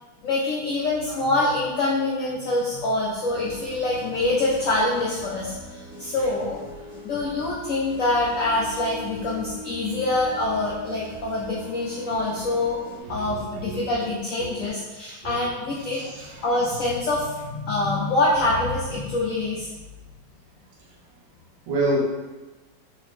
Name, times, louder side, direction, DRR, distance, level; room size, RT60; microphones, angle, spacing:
voice 1, 0.2-6.6 7.0-12.8 13.1-16.0 16.4-19.7, left 2 dB, 85° left, -5 dB, 0.7 m, -25 dB
sound 1, 3.3-13.0, equal, 45° left, 1.4 m, -41 dB
voice 2, 13.0-13.8 14.4-14.5 15.2-15.4 15.8-16.6 20.8-20.9 21.7-22.0, right 2 dB, 70° right, -4 dB, 1.5 m, -29 dB
4.0 x 2.8 x 3.1 m, 1.2 s
omnidirectional pair, 2.1 m